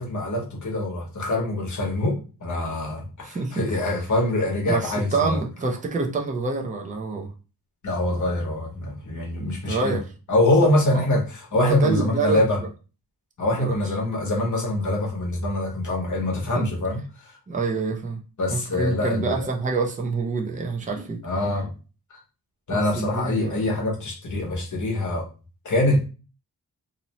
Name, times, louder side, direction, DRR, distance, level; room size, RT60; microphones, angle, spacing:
voice 1, 0.0-5.4 7.8-10.0 10.3-12.6 13.4-17.3 18.4-19.5 21.2-21.7 22.7-25.2 25.6-26.0, left 1 dB, 50° left, -1 dB, 0.9 m, -24 dB
voice 2, 3.2-3.6 4.6-7.3 9.7-10.1 10.6-11.0 11.5-12.5 13.6-13.8 16.6-16.7 17.5-18.2 18.5-21.2 22.7-23.6, right 4 dB, 20° right, 1 dB, 0.4 m, -27 dB
2.6 x 2.0 x 2.8 m, 0.34 s
wide cardioid pair, 170°, 38 cm